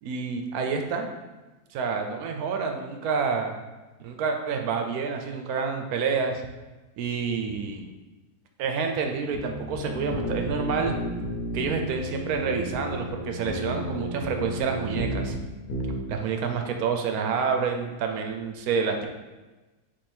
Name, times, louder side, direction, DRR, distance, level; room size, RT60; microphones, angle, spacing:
voice 1, 0.0-1.1 1.7-3.5 4.0-6.4 7.0-7.9 8.6-10.9 11.5-15.3 16.1-19.1, right 5 dB, 75° right, 4 dB, 1.0 m, -28 dB
sound 1, 9.3-15.4 15.7-16.0, equal, 75° left, 1.3 m, -32 dB
3.4 x 3.2 x 4.3 m, 1.2 s
omnidirectional pair, 1.6 m